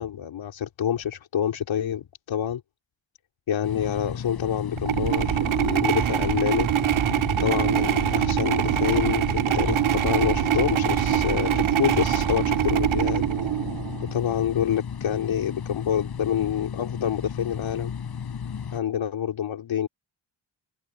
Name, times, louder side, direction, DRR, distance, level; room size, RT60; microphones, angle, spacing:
voice 1, 0.0-2.6 3.5-6.7 7.4-13.2 14.1-17.9 18.7-19.9, left 9 dB, 75° left, 3.1 m, -27 dB
sound 1, 3.6-18.8, left 7 dB, 50° left, 5.4 m, -34 dB
sound 2, 4.8-14.1, right 11 dB, 90° right, 1.7 m, -24 dB
wide cardioid pair, 135°, 47 cm